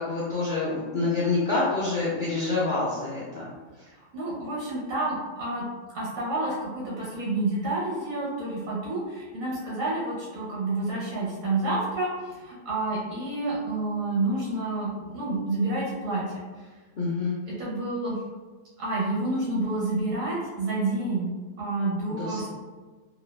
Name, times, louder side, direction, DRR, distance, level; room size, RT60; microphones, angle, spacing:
voice 1, 0.0-3.5 17.0-17.4 22.1-22.5, left 3 dB, 70° left, -8 dB, 0.4 m, -27 dB
voice 2, 4.0-5.6 5.9-16.4 17.4-18.2 18.8-21.3 21.6-22.5, right 2 dB, 85° right, -6 dB, 1.4 m, -29 dB
2.9 x 2.1 x 2.2 m, 1.3 s
omnidirectional pair, 1.4 m